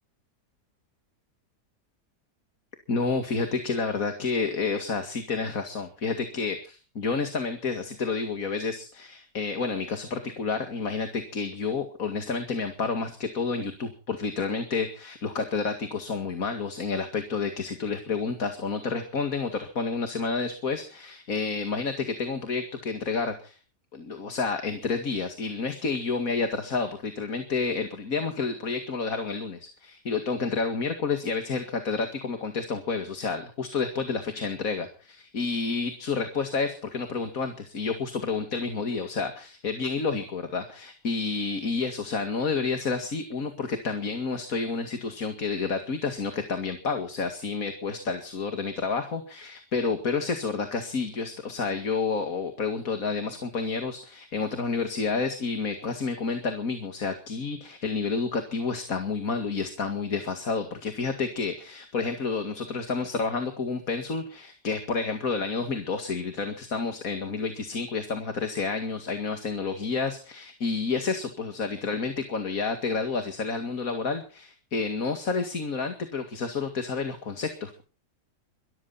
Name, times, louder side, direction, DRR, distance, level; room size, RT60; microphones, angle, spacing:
voice 1, 2.9-23.6 23.9-77.8, left 4 dB, 55° left, 7 dB, 2.5 m, -30 dB
23.5 x 14.0 x 4.1 m, 0.37 s
omnidirectional pair, 1.7 m